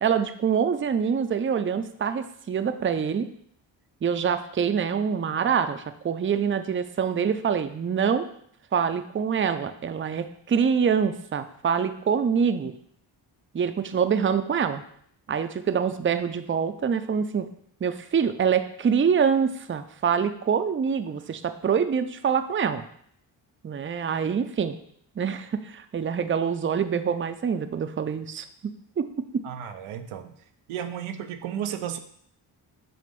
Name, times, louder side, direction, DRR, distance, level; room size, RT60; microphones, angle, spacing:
voice 1, 0.0-3.3 4.0-8.2 8.7-12.7 13.5-14.8 15.3-17.5 17.8-22.9 23.6-24.7 25.2-28.7 29.0-29.1 29.3-29.4, right 7 dB, 25° right, 9 dB, 0.5 m, -25 dB
voice 2, 29.4-30.4 30.7-32.0, right 9 dB, 85° right, 7 dB, 0.6 m, -33 dB
7.6 x 2.5 x 5.2 m, 0.66 s
supercardioid pair, 45°, 49 cm